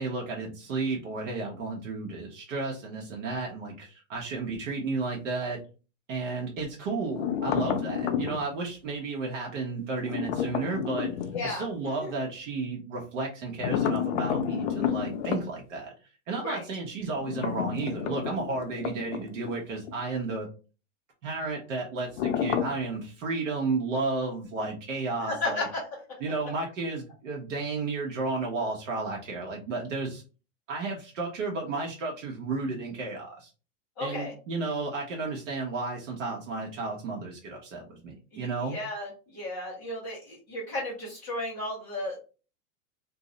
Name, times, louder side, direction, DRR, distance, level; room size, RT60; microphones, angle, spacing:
voice 1, 0.0-5.6 6.1-11.1 11.4-15.9 16.3-20.5 21.2-25.7 26.2-30.2 30.7-33.5 34.0-38.8, right 3 dB, 70° right, 0 dB, 0.9 m, -33 dB
sound 1, 7.1-8.5 10.0-11.5 13.6-15.4 17.2-19.6 19.9-20.0 22.2-22.9, left 8 dB, 65° left, 0.6 m, -30 dB
voice 2, 11.3-11.7 12.0-12.1 16.4-16.6 25.3-25.8 34.0-34.3 38.3-42.2, left 2 dB, 5° left, -9 dB, 0.3 m, -34 dB
2.5 x 2.0 x 3.8 m, 0.34 s
supercardioid pair, 175°, 39 cm